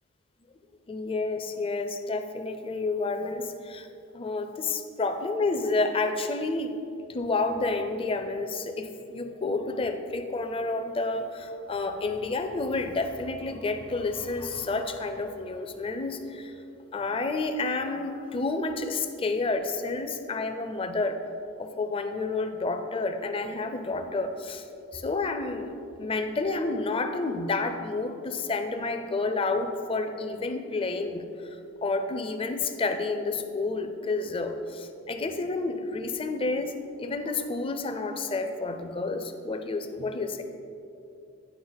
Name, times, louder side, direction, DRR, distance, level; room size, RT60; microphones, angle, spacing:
voice 1, 0.9-3.9 4.1-6.8 7.1-16.5 16.9-21.2 21.6-24.6 24.9-25.7 26.0-40.4, left 3 dB, 25° left, 7 dB, 0.4 m, -30 dB
10.0 x 4.6 x 4.0 m, 2.7 s
head